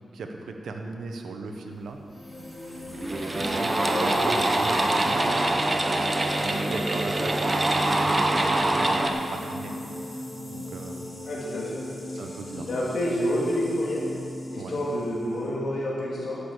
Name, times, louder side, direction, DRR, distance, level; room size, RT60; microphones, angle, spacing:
voice 1, 0.1-2.0 3.3-4.8 5.0-5.6 6.4-9.8 10.1-11.1 12.1-12.7 14.5-14.8, right 3 dB, 90° right, 4 dB, 1.1 m, -37 dB
sound 1, 2.1-15.5, equal, 30° left, 2.6 m, -37 dB
sound 2, 2.4-2.5 2.9-9.1, right 1 dB, 30° right, 1.0 m, -24 dB
voice 2, 3.9-4.4 11.3-11.9 12.7-14.0 14.5-16.4, equal, 70° left, -5 dB, 2.1 m, -28 dB
10.0 x 6.9 x 8.0 m, 2.6 s
cardioid pair, 85°, 0 cm